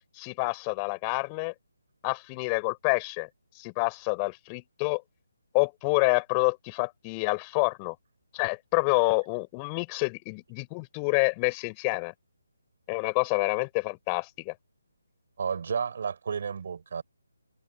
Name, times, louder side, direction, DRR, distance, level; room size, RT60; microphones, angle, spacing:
voice 1, 0.2-1.5 2.0-3.3 3.6-5.0 5.5-8.0 8.3-12.1 12.9-14.5, left 35 dB, 20° left, 4.3 m, -28 dB
voice 2, 15.4-17.0, right 6 dB, 50° right, 6.2 m, -31 dB
figure-of-eight pair, 150°, 0 cm